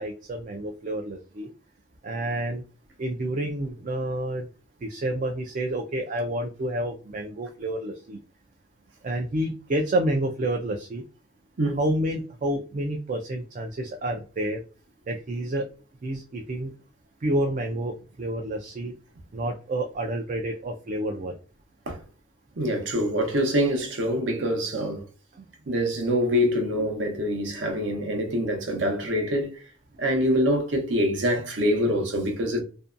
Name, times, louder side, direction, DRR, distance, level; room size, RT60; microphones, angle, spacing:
voice 1, 0.0-1.5 2.0-2.6 3.0-4.5 4.8-8.2 9.0-11.0 11.8-14.6 15.1-15.6 16.0-16.7 17.2-18.9 19.3-21.3 25.4-25.5, right 1 dB, 40° right, 0.3 m, -29 dB
voice 2, 22.6-25.1 25.7-29.6 30.0-32.6, equal, 70° right, 0.8 m, -25 dB
2.6 x 2.2 x 2.4 m
head